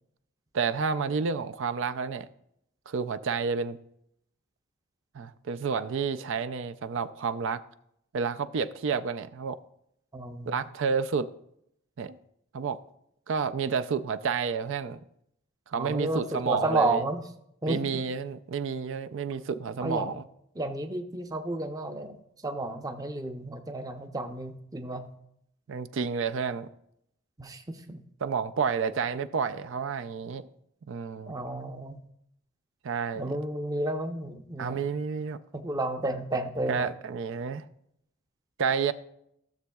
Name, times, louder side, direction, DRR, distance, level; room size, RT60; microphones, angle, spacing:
voice 1, 0.5-2.3 2.9-3.8 5.1-7.6 8.1-9.6 10.5-11.3 12.0-12.2 12.5-12.8 13.3-15.0 15.7-17.0 17.7-20.2 25.7-26.7 28.2-30.5 30.9-31.4 32.8-33.4 34.6-35.4 36.7-37.6 38.6-38.9, right 5 dB, 60° right, 0.4 m, -30 dB
voice 2, 10.1-10.6 15.7-17.2 17.6-17.8 19.8-20.1 20.6-22.2 22.4-25.0 27.4-28.0 31.3-32.0 33.2-34.8 35.5-36.9, right 2 dB, 15° right, 0.6 m, -31 dB
15.5 x 7.0 x 2.3 m
head